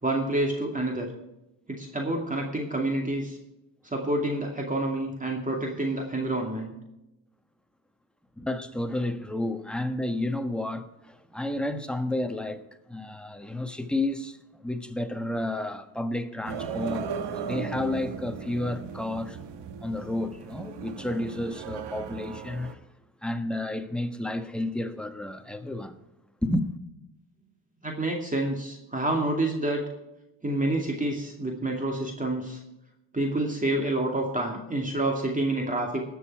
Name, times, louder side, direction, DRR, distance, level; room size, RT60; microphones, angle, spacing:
voice 1, 0.0-1.1 1.7-3.4 3.8-6.7 27.8-29.8 30.4-32.6 33.1-36.1, right 1 dB, 15° right, 2.4 m, -28 dB
voice 2, 8.4-17.1 17.3-19.4 19.8-22.8 23.2-26.0 26.4-26.7, left 1 dB, ahead, 1.4 m, -31 dB
sound 1, 16.4-22.7, right 7 dB, 70° right, 1.4 m, -37 dB
19.5 x 7.0 x 4.7 m
cardioid pair, 80°, 44 cm